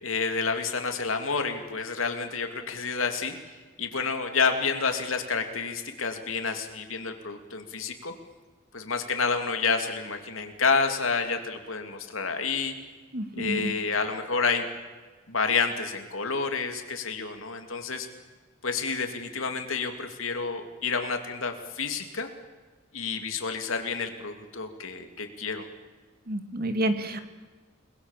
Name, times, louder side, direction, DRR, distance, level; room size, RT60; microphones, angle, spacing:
voice 1, 0.0-3.3 3.8-8.1 8.7-12.7 13.4-14.7 15.3-18.1 18.6-22.3 22.9-25.6, left 5 dB, 80° left, 5 dB, 3.1 m, -29 dB
voice 2, 13.1-13.7 26.3-27.2, right 1 dB, 50° right, 8 dB, 2.3 m, -29 dB
29.5 x 21.5 x 7.6 m, 1.3 s
head